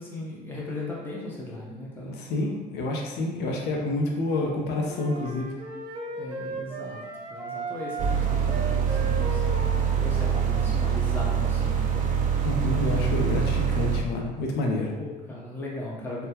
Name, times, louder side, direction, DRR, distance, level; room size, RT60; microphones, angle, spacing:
voice 1, 0.0-2.2 6.1-7.0 7.3-9.4 9.7-12.3 15.0-16.3, left 1 dB, 10° left, -5 dB, 0.7 m, -37 dB
voice 2, 2.0-5.6 12.4-14.9, left 2 dB, 75° left, 1 dB, 0.6 m, -28 dB
sound 1, 4.9-10.7, right 2 dB, 30° right, 0.8 m, -36 dB
sound 2, 8.0-14.0, right 7 dB, 50° right, 0.4 m, -25 dB
3.6 x 2.2 x 2.8 m, 1.3 s
cardioid pair, 110°, 17 cm